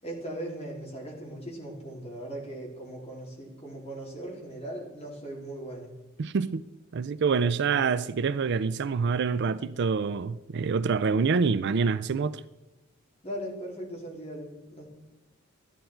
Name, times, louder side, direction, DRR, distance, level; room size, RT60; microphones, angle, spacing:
voice 1, 0.0-5.9 13.2-14.9, right 1 dB, 30° left, 3.5 m, -39 dB
voice 2, 6.2-6.6 6.9-12.4, right 5 dB, 55° right, 0.4 m, -26 dB
13.0 x 11.0 x 4.5 m
head